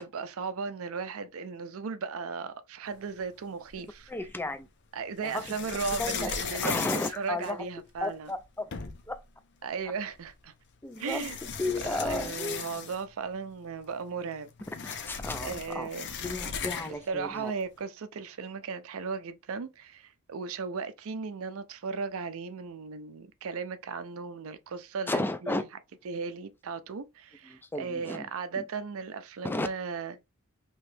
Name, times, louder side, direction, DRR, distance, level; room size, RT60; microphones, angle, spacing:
voice 1, 0.0-4.1 4.9-8.3 9.6-10.5 11.0-11.4 11.8-14.5 15.4-16.2 17.1-25.7 26.0-30.2, right 5 dB, 70° right, 0.5 m, -36 dB
sound 1, 3.7-4.4 5.2-8.0 8.4-8.5 8.7-9.2 10.2-10.3 10.9-13.2 13.5-13.6 13.9-17.1, left 6 dB, 55° left, 0.6 m, -37 dB
voice 2, 4.1-4.7 5.2-5.4 6.0-6.3 6.6-7.6 8.0-8.7 9.1-9.2 10.8-11.3 11.6-12.6 14.8-15.9 16.2-17.5 25.1-25.6 27.5-28.3 28.6-28.7 29.4-29.7, left 2 dB, 10° left, 0.3 m, -33 dB
3.0 x 2.8 x 3.2 m
head